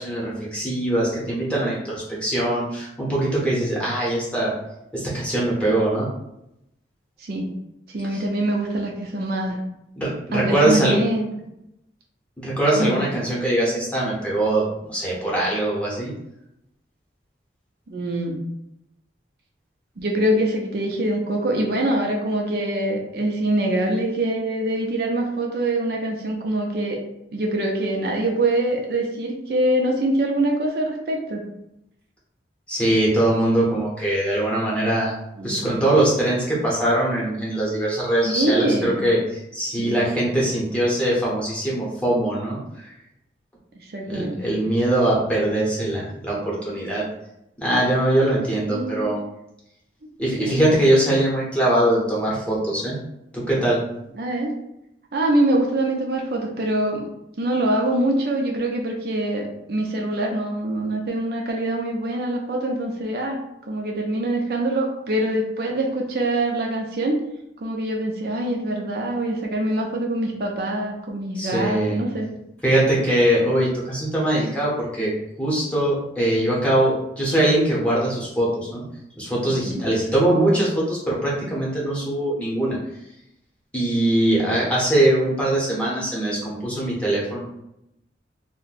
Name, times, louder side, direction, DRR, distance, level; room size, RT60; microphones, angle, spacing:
voice 1, 0.0-4.5 4.9-6.1 8.1-8.2 10.0-10.9 12.4-16.1 32.7-35.1 35.4-42.9 44.1-47.0 47.6-49.2 50.2-53.0 53.3-53.8 71.3-72.0 72.6-75.1 75.4-78.8 79.2-82.8 83.7-87.4, right 1 dB, 5° left, -6 dB, 0.8 m, -22 dB
voice 2, 7.9-9.6 10.3-11.3 12.8-13.0 17.9-18.4 20.0-27.0 27.3-31.4 35.4-35.7 38.2-39.0 39.8-40.0 43.8-44.3 48.6-49.0 50.4-50.7 54.2-54.5 55.1-57.0 57.4-67.2 67.6-72.3 79.5-79.8, right 1 dB, 60° right, 0 dB, 0.5 m, -24 dB
2.5 x 2.1 x 4.0 m, 0.83 s
head